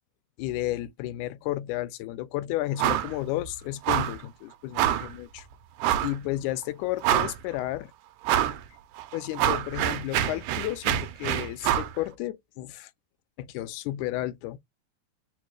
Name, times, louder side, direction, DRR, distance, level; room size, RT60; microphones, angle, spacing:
voice 1, 0.4-5.5 6.0-7.9 9.1-12.9 13.4-14.6, left 15 dB, 85° left, 2.0 m, -32 dB
sound 1, 2.8-3.1 3.4-3.5 3.8-4.2 4.8-5.1 5.8-6.2 6.6-6.7 7.0-7.5 8.2-8.6 9.0-11.9, right 12 dB, 90° right, 2.1 m, -26 dB
4.9 x 2.1 x 4.7 m
omnidirectional pair, 3.5 m